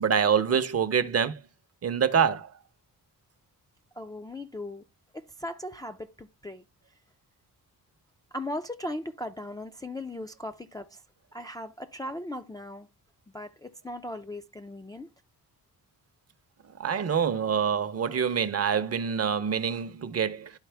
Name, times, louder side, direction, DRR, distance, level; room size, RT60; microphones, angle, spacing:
voice 1, 0.0-1.4 1.8-2.5 16.8-20.5, right 7 dB, 40° right, 0.7 m, -26 dB
voice 2, 4.0-4.8 5.1-6.6 8.3-11.0 11.3-12.9 13.3-15.1, left 1 dB, 10° left, 0.4 m, -38 dB
11.5 x 4.0 x 3.3 m
cardioid pair, 115°, 37 cm